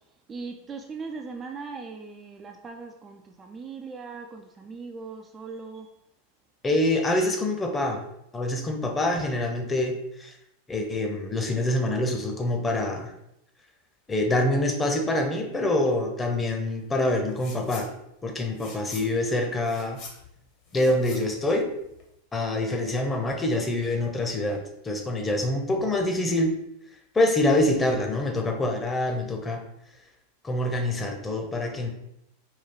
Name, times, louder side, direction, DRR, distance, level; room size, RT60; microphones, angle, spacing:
voice 1, 0.3-6.0, right 4 dB, 20° right, 3 dB, 0.3 m, -39 dB
voice 2, 6.6-8.0 8.3-10.3 10.7-13.1 14.1-17.9 18.2-20.0 20.7-21.7 22.3-26.5 27.1-29.6 30.4-31.9, left 1 dB, 15° left, 2 dB, 0.7 m, -25 dB
sound 1, 17.3-17.9 18.2-22.2, left 4 dB, 45° left, 1.0 m, -45 dB
4.5 x 2.3 x 3.7 m, 0.80 s
figure-of-eight pair, 90°, 0 cm